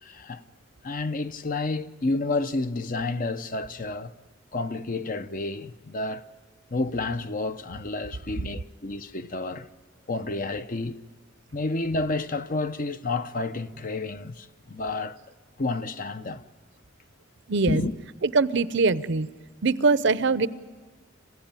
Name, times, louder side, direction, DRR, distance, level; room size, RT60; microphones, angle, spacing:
voice 1, 0.0-0.4 0.8-4.1 4.5-6.2 6.7-9.7 10.1-11.0 11.5-15.2 15.6-16.4 17.7-17.9, left 3 dB, 45° left, 0.8 m, -30 dB
voice 2, 17.5-17.8 18.2-19.3 19.6-20.5, right 4 dB, 65° right, 0.7 m, -22 dB
26.5 x 16.0 x 9.0 m
head